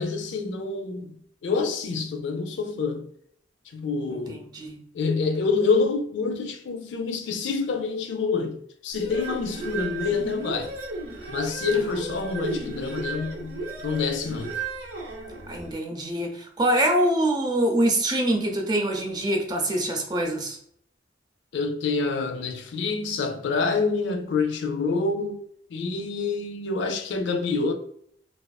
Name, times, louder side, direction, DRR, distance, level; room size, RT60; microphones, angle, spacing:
voice 1, 0.0-3.1 3.7-4.4 4.9-8.6 8.8-10.7 11.3-13.5 13.8-14.5 21.5-25.4 25.7-27.7, left 4 dB, 70° left, 0.4 m, -27 dB
voice 2, 4.1-4.8 11.8-11.9 15.5-20.6, right 1 dB, 20° right, 0.4 m, -25 dB
sound 1, 8.9-15.7, right 3 dB, 70° right, 0.6 m, -34 dB
2.4 x 2.4 x 2.2 m
head